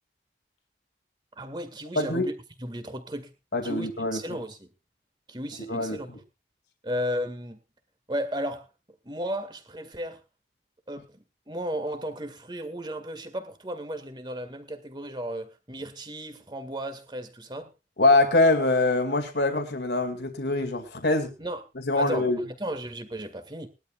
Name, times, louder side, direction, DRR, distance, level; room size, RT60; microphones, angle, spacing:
voice 1, 1.4-2.3 2.6-3.3 3.6-4.7 5.3-6.1 6.8-7.6 8.1-8.7 9.1-10.2 10.9-11.1 11.5-17.7 21.4-21.6 21.9-23.7, equal, 25° right, 1.9 m, -34 dB
voice 2, 2.0-2.3 3.5-4.4 5.7-6.2 18.0-21.3 21.9-22.4, left 2 dB, 75° left, 2.3 m, -24 dB
21.0 x 12.0 x 2.4 m
head